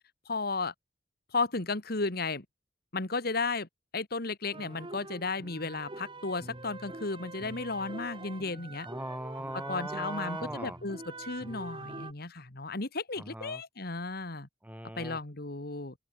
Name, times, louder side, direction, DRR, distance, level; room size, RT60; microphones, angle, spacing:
voice 1, 0.3-0.7 1.3-2.4 2.9-3.7 3.9-8.9 9.5-14.5 15.0-15.9, left 3 dB, 55° left, 2.0 m, -34 dB
sound 1, 4.5-12.1, right 2 dB, 30° right, 2.5 m, -44 dB
voice 2, 8.8-10.8 13.2-13.6 14.6-15.2, right 1 dB, 10° right, 7.9 m, -39 dB
open air
head